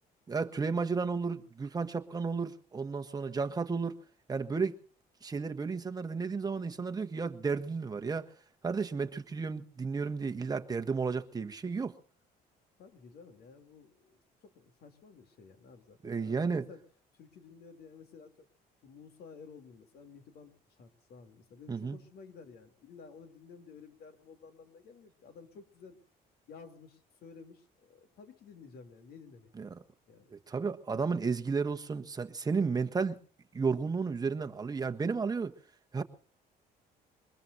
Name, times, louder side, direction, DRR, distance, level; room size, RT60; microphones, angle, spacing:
voice 1, 0.3-4.0 4.3-4.8 5.2-8.3 8.6-11.9 16.0-16.6 21.7-22.0 29.6-29.8 30.3-33.2 33.5-35.5 35.9-36.0, right 5 dB, 20° right, 1.3 m, -33 dB
voice 2, 12.8-16.8 17.1-18.5 18.8-26.0 26.5-29.5 30.1-30.3, left 5 dB, 70° left, 3.2 m, -53 dB
24.0 x 20.5 x 2.8 m
cardioid pair, 110°, 17 cm